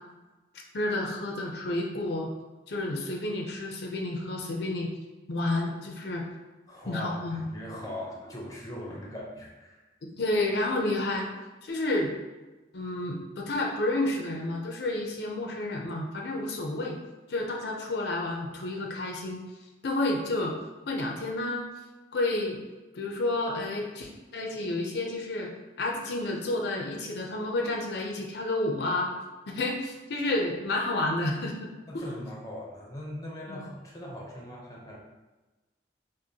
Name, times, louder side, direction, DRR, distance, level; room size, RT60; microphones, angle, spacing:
voice 1, 0.7-2.3 2.7-4.9 5.3-6.2 6.9-7.4 10.2-11.3 11.6-12.1 12.7-17.0 17.3-19.4 19.8-20.5 20.9-21.7 22.1-22.6 22.9-25.5 25.8-29.1 29.5-32.0 33.5-33.6, left 2 dB, 70° left, 1 dB, 0.5 m, -30 dB
voice 2, 6.7-9.8 31.9-35.0, equal, 20° left, -2 dB, 0.6 m, -40 dB
5.0 x 2.1 x 2.7 m, 1.2 s
head